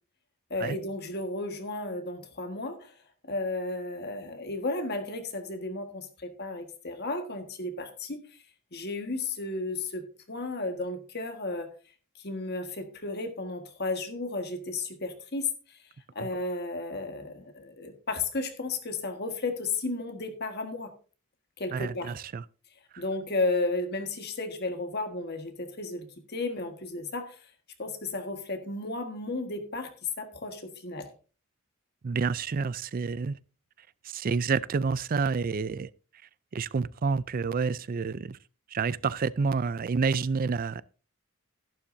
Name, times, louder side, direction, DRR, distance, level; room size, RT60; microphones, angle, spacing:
voice 1, 0.5-2.9 3.2-8.2 8.7-11.7 12.2-15.8 16.1-20.9 21.6-22.2 23.0-27.4 27.8-29.9 30.2-31.1, left 2 dB, 50° left, 1.5 m, -33 dB
voice 2, 21.7-22.4 22.9-23.0 32.0-33.4 34.0-35.9 36.5-38.4 38.7-40.8, right 5 dB, 40° right, 0.4 m, -29 dB
11.5 x 11.5 x 2.7 m
head